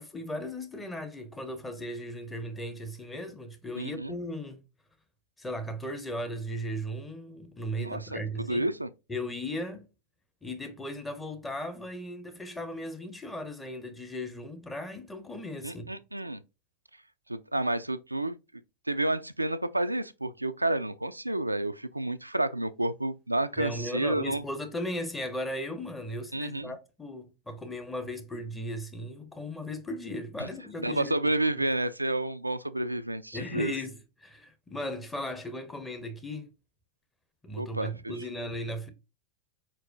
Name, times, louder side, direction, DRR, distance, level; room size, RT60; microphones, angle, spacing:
voice 1, 0.0-4.6 5.4-8.7 9.1-9.9 10.4-15.9 23.6-31.7 33.3-36.5 37.4-38.9, equal, 10° left, 0.9 m, -37 dB
voice 2, 3.8-4.1 7.8-8.9 15.6-16.4 17.3-18.3 18.9-24.4 26.3-26.8 30.8-33.7 37.6-38.1, right 1 dB, 85° right, 0.3 m, -30 dB
4.4 x 4.4 x 2.5 m
figure-of-eight pair, 90°, 0 cm